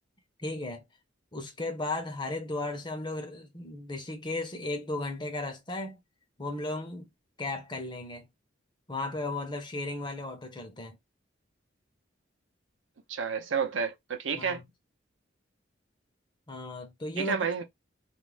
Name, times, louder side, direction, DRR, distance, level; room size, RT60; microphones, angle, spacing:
voice 1, 0.4-0.8 1.3-6.0 6.4-7.1 7.4-8.3 8.9-11.0 14.4-14.6 16.5-17.4, left 2 dB, 25° left, 0.7 m, -35 dB
voice 2, 13.1-14.6 17.2-17.6, right 6 dB, 80° right, 0.6 m, -30 dB
2.4 x 2.1 x 3.2 m
head